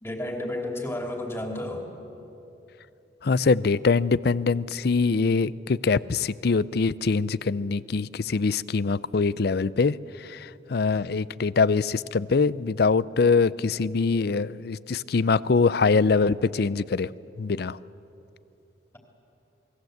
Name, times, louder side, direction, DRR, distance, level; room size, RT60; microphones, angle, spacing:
voice 1, 0.0-1.8, left 1 dB, 15° left, 2 dB, 2.9 m, -31 dB
voice 2, 3.2-17.1 17.4-17.8, left 4 dB, 60° left, 19 dB, 0.5 m, -23 dB
28.0 x 20.0 x 7.9 m, 2.9 s
head